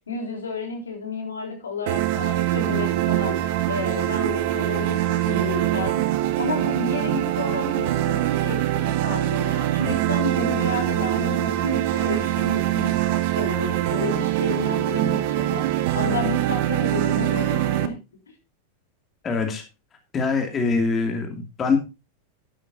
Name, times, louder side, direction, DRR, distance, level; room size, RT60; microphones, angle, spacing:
voice 1, 0.1-6.1 6.4-15.7 15.9-18.0, left 3 dB, 70° left, 3 dB, 3.7 m, -31 dB
sound 1, 1.9-17.9, right 14 dB, 50° right, 1.3 m, -23 dB
voice 2, 19.2-19.6 20.1-21.8, left 4 dB, 25° left, 4 dB, 2.5 m, -23 dB
12.0 x 11.5 x 2.7 m, 0.27 s
figure-of-eight pair, 90°, 0 cm